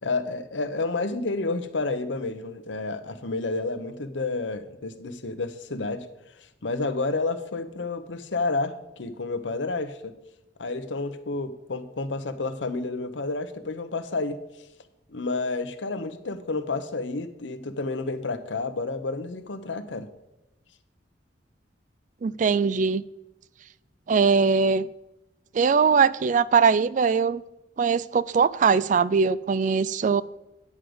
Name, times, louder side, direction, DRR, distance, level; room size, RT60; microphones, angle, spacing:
voice 1, 0.0-6.1 6.6-10.1 10.6-14.4 15.1-20.1, left 3 dB, 85° left, 11 dB, 0.9 m, -30 dB
voice 2, 22.2-23.0 24.1-24.9 25.5-27.4 27.8-30.2, right 5 dB, 45° right, 18 dB, 0.3 m, -21 dB
9.6 x 5.0 x 7.8 m, 0.91 s
head